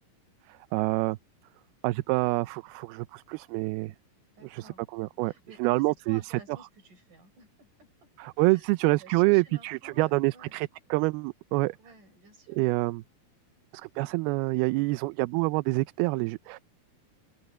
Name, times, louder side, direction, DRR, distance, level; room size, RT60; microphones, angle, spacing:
voice 1, 0.5-1.2 1.8-4.0 4.4-5.3 5.6-6.3 8.2-11.8 12.6-13.0 13.7-16.6, right 23 dB, 85° right, 2.5 m, -27 dB
voice 2, 4.3-4.8 5.2-8.1 8.4-10.6 11.8-12.7, right 3 dB, 55° right, 8.3 m, -53 dB
open air
omnidirectional pair, 4.4 m